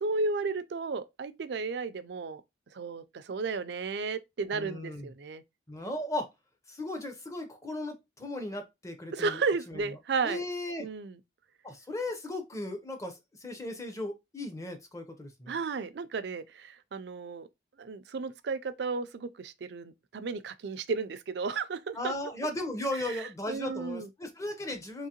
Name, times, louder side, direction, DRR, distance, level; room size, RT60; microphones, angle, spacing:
voice 1, 0.0-2.4 2.7-5.4 9.1-10.4 10.8-11.2 15.5-17.5 17.8-22.1 23.0-24.1, right 4 dB, 70° right, 0.4 m, -33 dB
voice 2, 4.5-5.1 5.7-6.3 6.7-9.4 9.7-9.8 10.2-10.9 11.6-15.6 21.9-25.1, left 1 dB, 15° left, 0.6 m, -36 dB
3.7 x 2.9 x 2.8 m
head